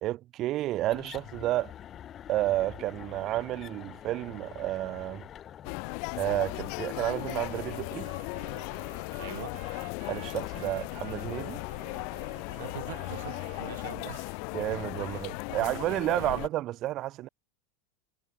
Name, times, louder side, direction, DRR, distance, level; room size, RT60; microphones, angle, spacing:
voice 1, 0.0-1.7 2.3-5.2 6.2-8.1 10.1-11.6 14.5-17.3, right 15 dB, 35° right, 0.5 m, -31 dB
sound 1, 0.8-7.3, left 10 dB, 25° left, 2.8 m, -47 dB
sound 2, 5.6-16.5, left 36 dB, 50° left, 1.0 m, -37 dB
Wind instrument woodwind instrument, 6.9-13.9, right 21 dB, 65° right, 2.2 m, -51 dB
voice 2, 9.2-9.6 12.6-14.4 15.0-15.7 16.1-16.4, right 15 dB, 80° right, 2.7 m, -44 dB
supercardioid pair, 155°, 0 cm